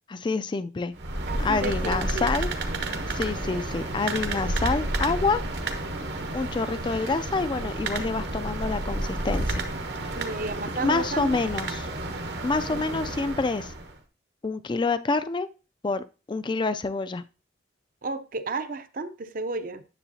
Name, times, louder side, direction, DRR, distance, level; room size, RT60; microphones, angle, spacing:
voice 1, 0.1-0.9 1.4-2.5 3.1-5.4 6.3-9.6 10.8-11.9 12.4-13.7 14.4-15.5 15.8-17.2, left 3 dB, 25° left, 13 dB, 0.3 m, -27 dB
sound 1, 0.9-13.9, right 2 dB, 70° right, 1.1 m, -31 dB
voice 2, 1.3-2.3 10.1-11.4 12.7-13.0 18.0-19.8, right 3 dB, 50° right, 10 dB, 0.6 m, -33 dB
9.9 x 7.1 x 2.7 m, 0.33 s
head